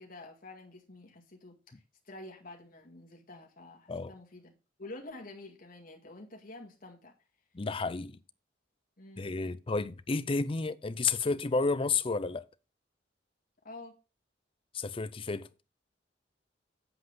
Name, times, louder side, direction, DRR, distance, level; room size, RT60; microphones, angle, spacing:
voice 1, 0.0-4.5 4.8-7.1 9.0-9.3 13.6-14.0, left 2 dB, 50° left, 2.0 m, -48 dB
voice 2, 7.5-8.2 9.2-12.5 14.7-15.5, left 4 dB, 30° left, 0.5 m, -31 dB
7.8 x 7.8 x 3.9 m
head